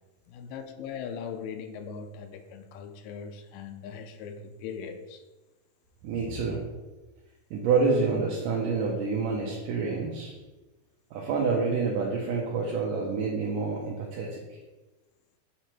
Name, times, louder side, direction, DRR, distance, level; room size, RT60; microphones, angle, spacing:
voice 1, 0.3-5.2, left 6 dB, 80° left, 1.9 m, -40 dB
voice 2, 6.0-6.6 7.5-10.3 11.1-14.6, right 4 dB, 75° right, 2.2 m, -28 dB
7.8 x 3.1 x 4.4 m
omnidirectional pair, 4.3 m